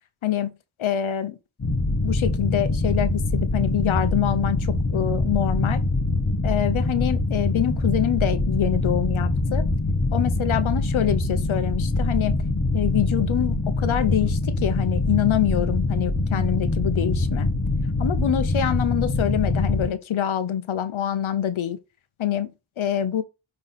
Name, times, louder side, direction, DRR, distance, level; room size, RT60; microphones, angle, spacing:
voice 1, 0.2-1.4 2.0-5.8 6.4-9.7 10.1-12.4 12.7-17.5 18.0-21.8 22.2-23.2, left 10 dB, 85° left, 0.9 m, -25 dB
sound 1, 1.6-19.9, left 2 dB, 35° left, 1.6 m, -24 dB
8.8 x 3.2 x 4.1 m
wide cardioid pair, 85°, 47 cm